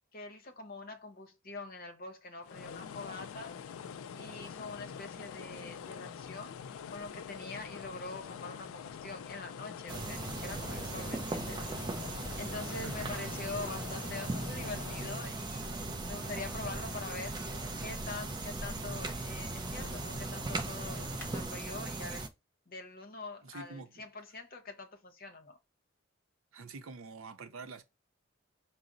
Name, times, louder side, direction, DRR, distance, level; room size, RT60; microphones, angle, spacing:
voice 1, 0.1-3.6 4.1-11.9 12.4-17.4 17.8-22.3 22.7-25.6, left 3 dB, 45° left, 0.8 m, -44 dB
sound 1, 2.4-15.4, left 7 dB, 85° left, 0.3 m, -45 dB
sound 2, 9.9-22.3, right 2 dB, 20° right, 0.3 m, -38 dB
voice 2, 12.8-13.1 23.4-23.9 26.5-27.8, right 3 dB, 85° right, 0.6 m, -45 dB
sound 3, 15.3-21.4, left 1 dB, 10° left, 1.3 m, -47 dB
4.9 x 2.0 x 3.8 m
head